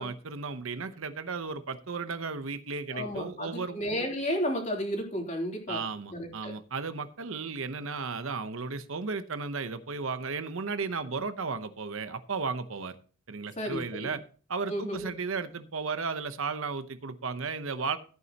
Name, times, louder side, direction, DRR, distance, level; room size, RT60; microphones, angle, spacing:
voice 1, 0.0-3.8 5.7-12.9 13.3-14.2 14.5-18.0, right 4 dB, 65° right, 11 dB, 0.8 m, -34 dB
voice 2, 2.9-5.8 6.1-6.5 13.6-14.1 14.7-15.1, equal, 35° left, 1 dB, 3.2 m, -32 dB
14.5 x 9.5 x 2.9 m, 0.39 s
head